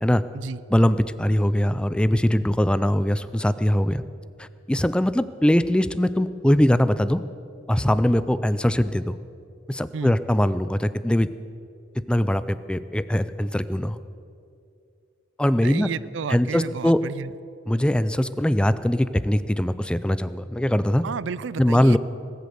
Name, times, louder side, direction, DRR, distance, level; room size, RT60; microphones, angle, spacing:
voice 1, 0.7-4.0 4.4-7.2 7.7-9.2 9.7-11.3 12.1-14.0 15.4-15.9 16.3-17.0 17.7-21.0 21.6-22.0, equal, 5° left, 14 dB, 0.4 m, -21 dB
voice 2, 15.6-17.3 21.0-22.0, right 5 dB, 80° right, 19 dB, 0.4 m, -32 dB
19.0 x 8.4 x 8.0 m, 2.5 s
head